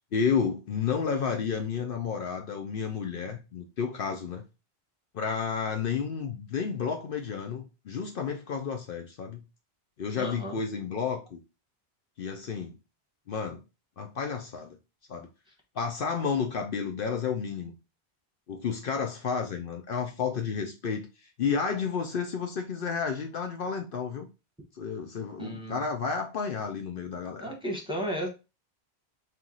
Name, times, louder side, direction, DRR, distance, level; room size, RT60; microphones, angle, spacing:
voice 1, 0.1-4.4 5.1-9.4 10.0-11.4 12.2-12.8 13.3-13.6 14.0-14.8 15.1-15.3 15.7-17.7 18.5-24.3 24.8-27.5, left 6 dB, 65° left, 0.8 m, -31 dB
voice 2, 10.2-10.6 25.4-25.8 27.4-28.3, equal, 5° right, 1.1 m, -33 dB
4.5 x 2.5 x 3.7 m
omnidirectional pair, 1.1 m